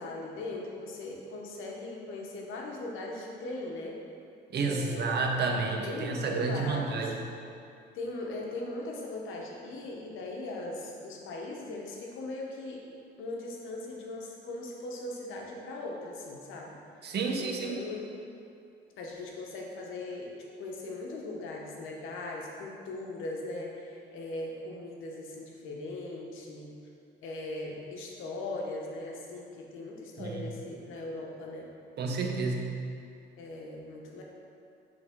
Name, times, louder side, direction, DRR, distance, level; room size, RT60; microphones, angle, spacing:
voice 1, 0.0-4.0 4.6-5.2 5.6-7.3 7.9-12.8 13.2-16.8 17.0-18.0 19.0-20.3 20.6-26.7 27.2-31.7 33.4-34.2, left 2 dB, 90° left, -1 dB, 0.9 m, -39 dB
voice 2, 4.5-7.2 17.0-17.8 30.2-30.4 32.0-32.8, right 4 dB, 55° right, 1 dB, 0.8 m, -30 dB
7.9 x 3.5 x 3.5 m, 2.6 s
cardioid pair, 90°, 20 cm